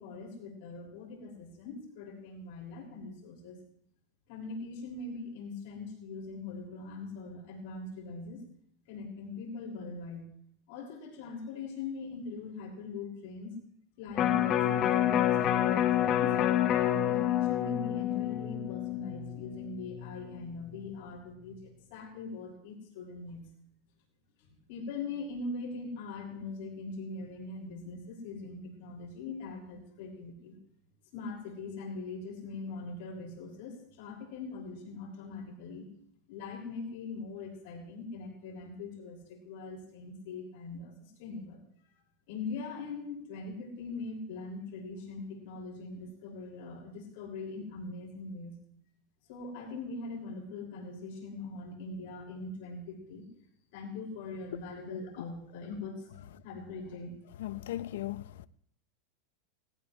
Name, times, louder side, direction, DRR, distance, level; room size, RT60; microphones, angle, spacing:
voice 1, 0.0-3.6 4.3-8.4 8.9-10.3 10.7-13.6 14.0-16.4 16.7-23.5 24.4-30.6 31.1-35.9 36.3-41.6 42.3-48.5 49.3-53.2 53.7-56.1 56.4-57.1, left 3 dB, 60° left, 5.8 m, -41 dB
Electric guitar, 14.1-20.4 20.8-20.9, left 11 dB, 35° left, 1.1 m, -28 dB
voice 2, 57.4-58.5, left 14 dB, 85° left, 0.7 m, -37 dB
20.0 x 18.0 x 3.3 m
supercardioid pair, 155°, 0 cm